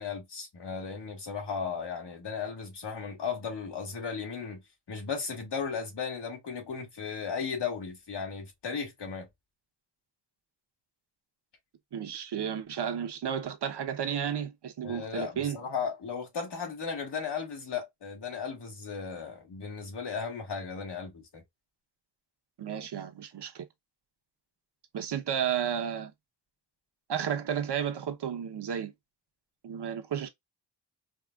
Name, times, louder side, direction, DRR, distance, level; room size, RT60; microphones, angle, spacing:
voice 1, 0.0-4.6 4.9-9.3 14.8-21.4, left 6 dB, 85° left, 1.8 m, -36 dB
voice 2, 11.9-15.6 22.6-23.6 24.9-26.1 27.1-28.9 29.6-30.3, right 8 dB, 75° right, 0.9 m, -32 dB
4.9 x 2.4 x 2.3 m
wide cardioid pair, 115°, 41 cm